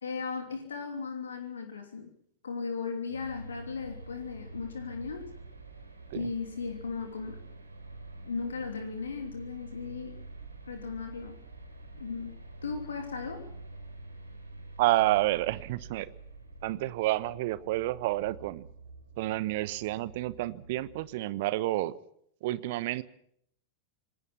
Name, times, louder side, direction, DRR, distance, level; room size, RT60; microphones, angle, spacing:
voice 1, 0.0-2.1 2.4-5.3 6.1-7.4 8.2-10.1 10.7-11.4 12.0-12.3 12.6-13.5, left 5 dB, 70° left, 6 dB, 3.1 m, -36 dB
sound 1, 3.1-21.1, right 2 dB, 80° right, 3.8 m, -47 dB
voice 2, 14.8-16.1 16.6-18.7 19.2-21.9 22.4-23.0, right 17 dB, 50° right, 17 dB, 1.1 m, -29 dB
26.5 x 20.0 x 5.8 m, 0.68 s
figure-of-eight pair, 90°, 0 cm